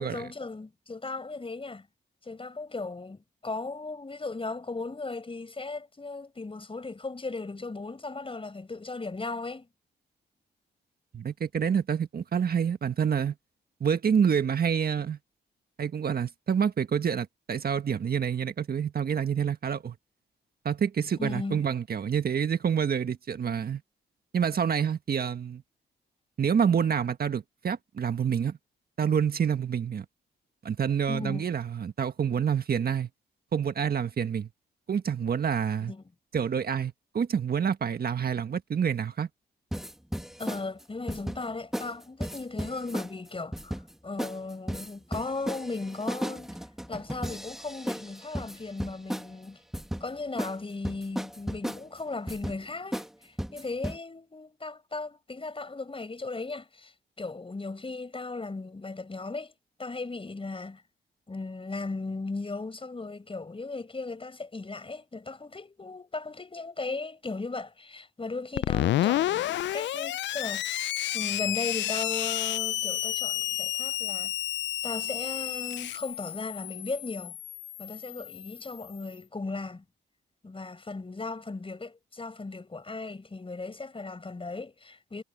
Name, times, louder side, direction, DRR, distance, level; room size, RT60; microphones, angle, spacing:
voice 1, 0.0-1.9 2.2-9.7 21.2-21.6 31.1-31.5 35.8-36.0 40.4-46.6 46.9-49.6 50.0-59.5 59.8-60.8 61.3-70.8 71.1-74.3 74.8-77.4 77.8-79.8 80.4-85.2, left 3 dB, 30° left, 5.3 m, -37 dB
voice 2, 11.1-13.3 13.8-15.2 15.8-19.9 20.6-23.8 24.3-25.6 26.4-28.6 29.0-30.0 30.6-33.1 33.5-34.5 34.9-35.9 36.3-39.3, right 7 dB, 55° right, 1.6 m, -27 dB
sound 1, 39.7-40.6 41.1-41.4 41.7-41.9 42.2-43.1 43.5-43.9 44.2-44.4 44.7-49.3 49.7-50.0 50.4-50.6 50.8-51.8 52.3-52.6 52.9-53.1 53.4-54.0, equal, ahead, 1.5 m, -34 dB
Screech, 68.6-79.0, left 14 dB, 75° left, 0.4 m, -31 dB
cardioid pair, 65°, 19 cm